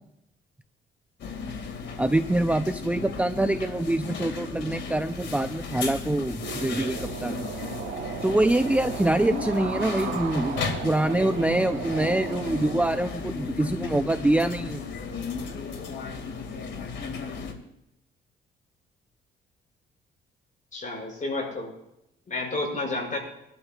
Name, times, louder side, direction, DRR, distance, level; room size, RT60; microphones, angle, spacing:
sound 1, 1.2-17.5, left 5 dB, 65° left, 2.3 m, -35 dB
voice 1, 2.0-7.5 8.2-14.8, right 1 dB, 5° right, 8 dB, 0.6 m, -25 dB
sound 2, 6.4-12.9, right 8 dB, 75° right, 1.2 m, -36 dB
voice 2, 20.7-21.7 22.3-23.2, left 2 dB, 40° left, 0 dB, 6.7 m, -30 dB
24.0 x 12.5 x 2.4 m, 0.83 s
cardioid pair, 90°, 20 cm